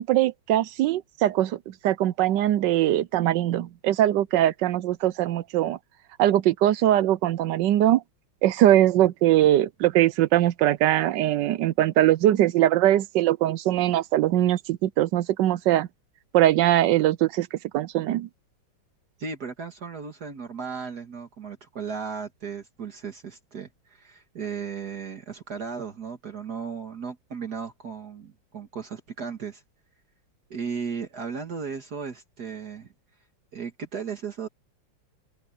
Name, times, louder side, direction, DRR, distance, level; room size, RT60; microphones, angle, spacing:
voice 1, 0.0-5.8 6.2-8.0 8.4-15.9 16.3-18.3, right 13 dB, 75° right, 1.2 m, -21 dB
voice 2, 19.2-29.6 30.5-32.9 33.5-34.5, right 6 dB, 55° right, 2.2 m, -35 dB
open air
omnidirectional pair, 2.1 m